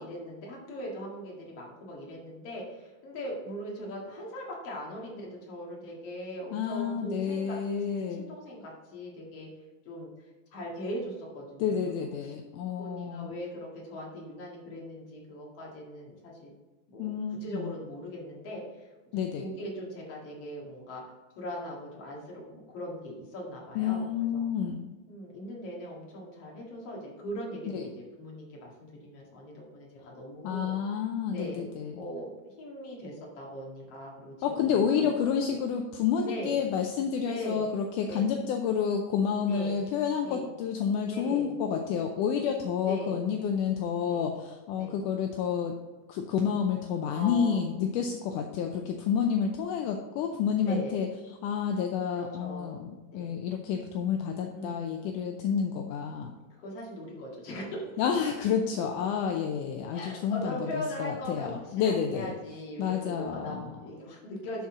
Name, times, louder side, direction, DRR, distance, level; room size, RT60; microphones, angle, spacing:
voice 1, 0.0-7.6 8.1-9.5 9.9-10.1 10.5-12.3 12.8-16.5 16.9-17.1 17.4-18.9 19.4-21.0 21.4-24.4 25.1-30.7 31.3-31.6 31.9-35.1 36.2-36.5 37.2-37.6 38.1-38.3 39.4-39.8 40.2-40.5 41.1-41.5 42.8-43.2 44.0-44.3 44.7-45.0 47.1-47.6 50.6-50.9 52.1-52.8 53.1-53.3 54.5-54.9 56.6-58.0 59.9-64.7, equal, 50° left, -3 dB, 2.7 m, -40 dB
voice 2, 6.5-8.2 11.6-13.3 17.0-17.7 19.1-19.5 23.8-24.8 27.7-27.8 30.4-32.0 34.4-45.8 46.1-51.1 51.4-56.4 58.0-62.3 62.8-63.6, left 7 dB, 80° left, 3 dB, 2.1 m, -29 dB
12.0 x 4.2 x 3.7 m, 1.2 s
omnidirectional pair, 3.7 m